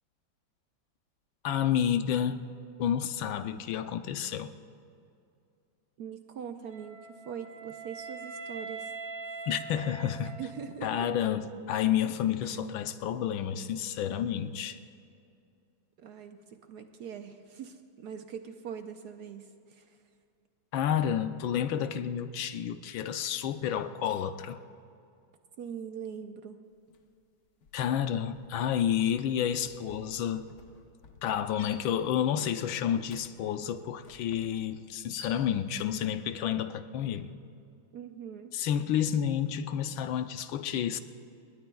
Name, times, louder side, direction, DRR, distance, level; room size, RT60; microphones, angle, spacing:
voice 1, 1.4-2.5 2.8-4.5 9.5-10.4 10.8-14.8 20.7-24.6 27.7-30.5 31.2-37.3 38.5-41.0, left 9 dB, 80° left, 10 dB, 1.4 m, -30 dB
voice 2, 6.0-8.9 9.3-9.4 10.4-11.1 16.0-20.0 25.6-26.6 37.9-38.5, right 7 dB, 60° right, 6 dB, 1.2 m, -42 dB
Wind instrument woodwind instrument, 6.7-10.9, right 4 dB, 10° right, 2.1 m, -42 dB
sound 1, 26.9-27.2 27.5-35.9, left 6 dB, 55° left, 1.4 m, -52 dB
28.0 x 21.0 x 2.3 m, 2.5 s
omnidirectional pair, 2.2 m